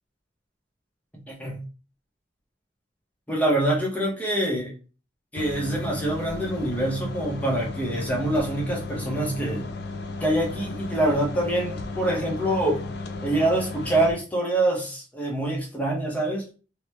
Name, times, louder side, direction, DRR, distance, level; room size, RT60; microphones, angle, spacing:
voice 1, 1.1-1.6 3.3-4.7 5.3-9.7 10.2-12.9 13.2-16.5, right 1 dB, 10° left, -2 dB, 0.7 m, -25 dB
sound 1, 5.4-14.1, left 3 dB, 65° left, 0.4 m, -35 dB
3.0 x 2.1 x 3.1 m, 0.34 s
head